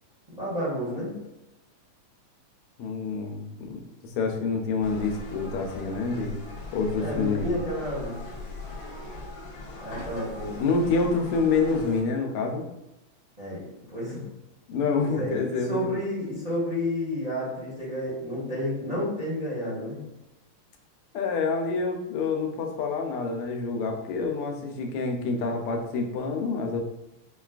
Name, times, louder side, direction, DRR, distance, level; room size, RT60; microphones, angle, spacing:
voice 1, 0.3-1.1 7.0-8.2 9.8-10.6 13.4-14.2 15.0-20.0, equal, 25° right, -9 dB, 0.8 m, -31 dB
voice 2, 2.8-6.4 6.7-7.5 10.6-12.6 14.7-15.8 21.1-26.8, left 4 dB, 90° left, 3 dB, 1.6 m, -27 dB
sound 1, 4.8-12.0, left 2 dB, 70° left, 1.4 m, -40 dB
6.1 x 2.3 x 2.4 m, 0.93 s
omnidirectional pair, 2.4 m